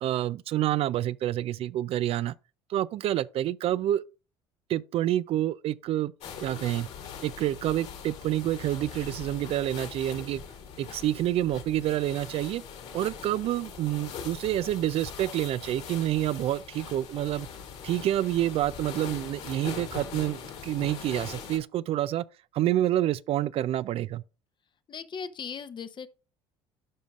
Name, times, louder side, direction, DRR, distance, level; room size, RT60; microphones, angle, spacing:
voice 1, 0.0-2.3 2.7-4.0 4.7-6.1 6.4-6.9 7.2-10.4 10.8-12.6 12.9-17.5 17.8-22.2 22.5-24.2, right 13 dB, 50° right, 0.4 m, -28 dB
sound 1, 6.2-21.6, left 7 dB, 60° left, 2.4 m, -42 dB
voice 2, 24.9-26.1, left 6 dB, 35° left, 0.8 m, -38 dB
12.5 x 5.1 x 2.4 m
hypercardioid pair, 75°, 13 cm